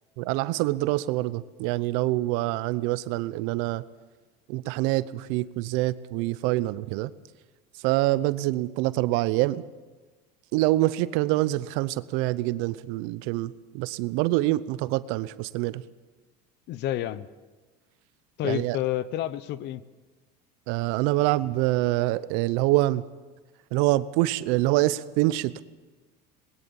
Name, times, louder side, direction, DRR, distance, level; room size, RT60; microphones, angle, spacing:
voice 1, 0.2-3.8 4.5-7.1 7.8-9.6 10.5-15.8 18.4-18.8 20.7-23.0 23.7-25.6, right 17 dB, 70° right, 17 dB, 0.8 m, -25 dB
voice 2, 16.7-17.3 18.4-19.8, left 12 dB, 55° left, 17 dB, 0.9 m, -29 dB
20.0 x 18.5 x 7.1 m, 1.3 s
supercardioid pair, 95°, 21 cm